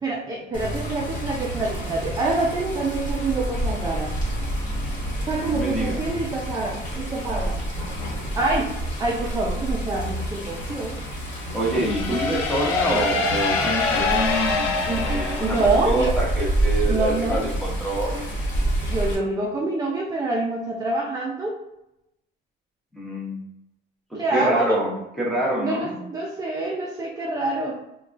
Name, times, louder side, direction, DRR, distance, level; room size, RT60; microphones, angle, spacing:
voice 1, 0.0-4.1 5.3-7.6 8.4-8.7 9.0-11.0 14.8-15.1 15.4-16.2 16.8-17.5 18.8-21.6 24.2-24.8 25.6-27.8, right 2 dB, 15° right, -2 dB, 0.4 m, -26 dB
Water, 0.5-19.2, right 1 dB, 35° left, 1.3 m, -28 dB
voice 2, 5.5-6.0 11.5-14.7 15.0-18.3 22.9-23.4 24.1-24.9 25.2-26.0, right 1 dB, ahead, -5 dB, 0.8 m, -26 dB
sound 1, 11.6-16.3, left 3 dB, 85° left, 0.6 m, -25 dB
3.4 x 2.2 x 2.5 m, 0.86 s
cardioid pair, 125°, 21 cm